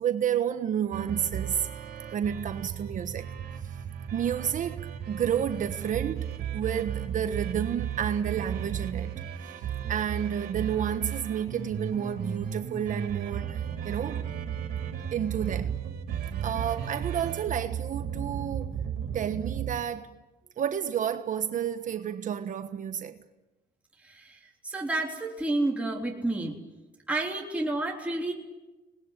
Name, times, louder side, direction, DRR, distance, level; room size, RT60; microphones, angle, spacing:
voice 1, 0.0-1.7 2.1-3.3 4.1-14.3 15.1-15.8 16.4-18.8 19.1-20.1 20.6-23.2, right 9 dB, 50° right, 1.3 m, -31 dB
sound 1, 0.9-19.8, right 9 dB, 70° right, 3.4 m, -35 dB
voice 2, 24.6-26.5 27.1-28.3, right 2 dB, 10° right, 3.7 m, -29 dB
26.5 x 20.0 x 9.9 m
cardioid pair, 110°, 17 cm